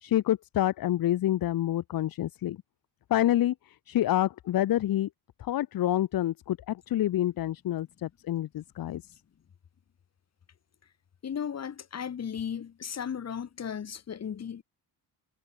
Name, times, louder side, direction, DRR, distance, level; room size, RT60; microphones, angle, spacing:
voice 1, 0.0-2.6 3.1-5.1 5.4-9.0, left 13 dB, 60° left, 1.2 m, -27 dB
voice 2, 11.2-14.6, left 8 dB, 40° left, 4.7 m, -35 dB
cardioid pair, 165°, 39 cm